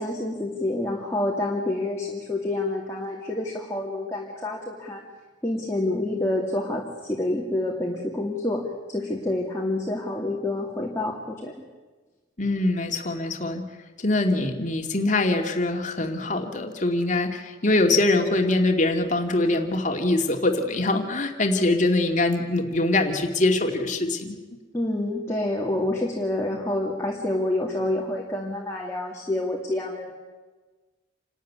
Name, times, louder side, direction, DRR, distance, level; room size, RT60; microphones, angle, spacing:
voice 1, 0.0-5.0 5.4-8.6 8.9-11.5 24.7-30.1, left 1 dB, 15° left, -2 dB, 2.6 m, -28 dB
voice 2, 12.4-13.6 14.0-24.4, left 2 dB, 40° left, 4 dB, 2.4 m, -23 dB
28.0 x 13.0 x 9.6 m, 1.3 s
head